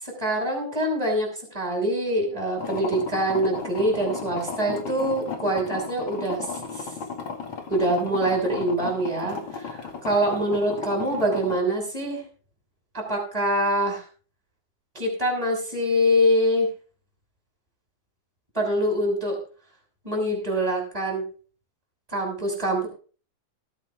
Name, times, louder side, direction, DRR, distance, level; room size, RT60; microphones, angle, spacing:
voice 1, 0.0-6.5 6.7-6.9 7.7-12.2 12.9-14.0 14.9-16.7 18.5-19.4 20.0-21.2 22.1-22.9, equal, 10° right, 1 dB, 6.0 m, -24 dB
sound 1, 2.6-11.6, left 5 dB, 45° left, 2.6 m, -35 dB
20.0 x 8.3 x 3.5 m, 0.38 s
omnidirectional pair, 3.4 m